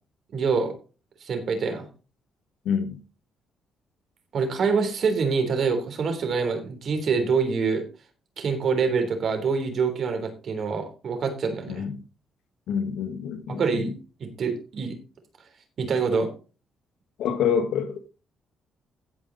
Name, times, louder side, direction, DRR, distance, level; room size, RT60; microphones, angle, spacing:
voice 1, 0.3-0.7 1.2-1.9 4.3-7.8 8.4-11.9 13.5-15.0 15.8-16.3, right 5 dB, 60° right, 3.4 m, -25 dB
voice 2, 2.6-3.0 11.7-11.9 12.7-13.8 17.2-18.0, left 7 dB, 80° left, 1.5 m, -26 dB
16.0 x 5.3 x 4.0 m
cardioid pair, 90°, 0 cm